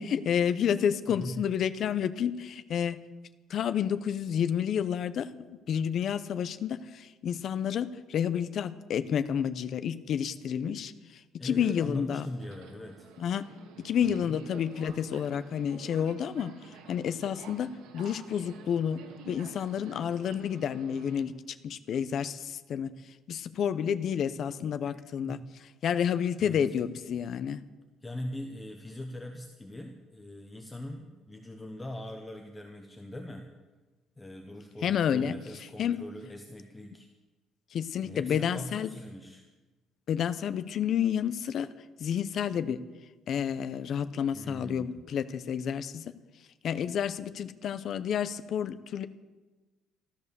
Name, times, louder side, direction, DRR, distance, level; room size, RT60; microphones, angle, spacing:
voice 1, 0.0-3.0 3.5-5.3 5.7-12.3 13.2-13.5 13.8-16.6 16.9-21.3 21.6-22.9 23.3-25.4 25.8-27.6 34.8-35.3 35.8-36.0 37.7-38.9 40.1-41.7 42.0-42.8 43.3-46.1 46.6-49.1, left 8 dB, 45° left, 12 dB, 0.7 m, -30 dB
voice 2, 1.1-1.4 11.4-13.1 14.0-14.4 25.2-25.4 26.4-26.8 28.0-33.5 34.2-37.1 38.0-39.5 44.3-45.1, left 1 dB, 10° left, 4 dB, 0.9 m, -41 dB
Subway metro underground, 12.3-21.2, right 7 dB, 80° right, 1.7 m, -50 dB
13.5 x 13.5 x 6.8 m, 1.2 s
cardioid pair, 155°, 0 cm